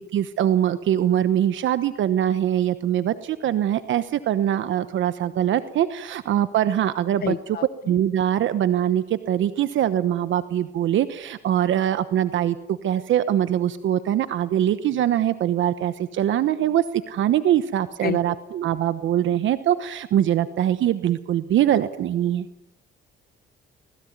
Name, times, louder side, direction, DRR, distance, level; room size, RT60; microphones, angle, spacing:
voice 1, 0.1-7.3 7.9-22.5, right 11 dB, 75° right, 12 dB, 1.1 m, -23 dB
voice 2, 7.2-7.9 18.0-18.4, left 8 dB, 50° left, 13 dB, 0.9 m, -30 dB
25.0 x 20.5 x 9.5 m, 0.89 s
cardioid pair, 90°, 20 cm